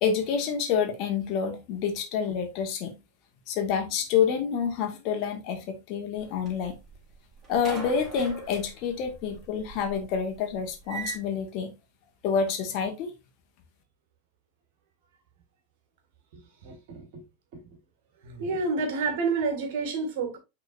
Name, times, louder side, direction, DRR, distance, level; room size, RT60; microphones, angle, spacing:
voice 1, 0.0-3.0 3.5-6.8 7.5-11.7 12.2-13.1, left 7 dB, 40° left, 1.7 m, -28 dB
sound 1, 6.2-7.1 7.4-11.2, right 3 dB, 20° right, 3.2 m, -39 dB
voice 2, 16.3-17.2 17.5-17.6 18.2-20.4, right 4 dB, 50° right, 2.0 m, -30 dB
9.3 x 3.9 x 2.6 m
figure-of-eight pair, 90°, 0 cm